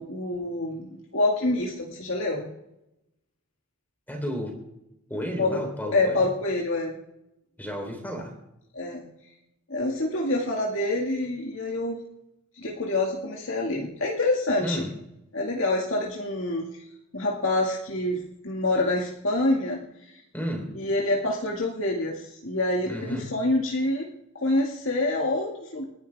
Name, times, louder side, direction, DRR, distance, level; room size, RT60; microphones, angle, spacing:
voice 1, 0.0-2.4 5.4-7.0 8.7-9.1 9.7-12.0 12.6-14.9 15.3-16.8 17.1-20.2 20.8-24.1 24.3-25.8, left 2 dB, 60° left, -1 dB, 2.1 m, -27 dB
voice 2, 4.1-4.6 5.1-6.3 7.6-8.3 14.6-14.9 20.3-20.7 22.9-23.3, equal, 10° left, 2 dB, 3.6 m, -32 dB
28.0 x 11.5 x 3.5 m, 0.88 s
head